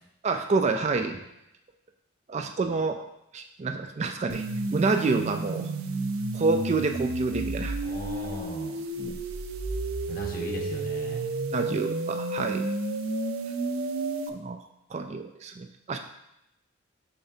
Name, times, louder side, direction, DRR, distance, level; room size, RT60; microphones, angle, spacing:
voice 1, 0.2-1.2 2.3-3.0 3.3-4.4 4.7-5.7 6.3-7.8 9.0-9.2 11.5-12.7 14.3-14.6 14.9-16.0, right 3 dB, 35° right, 6 dB, 0.3 m, -28 dB
sound 1, 4.3-14.3, right 2 dB, 90° right, 0.6 m, -31 dB
voice 2, 7.8-8.8 10.1-11.2, equal, 45° left, -1 dB, 1.2 m, -37 dB
6.7 x 5.8 x 2.7 m, 0.86 s
head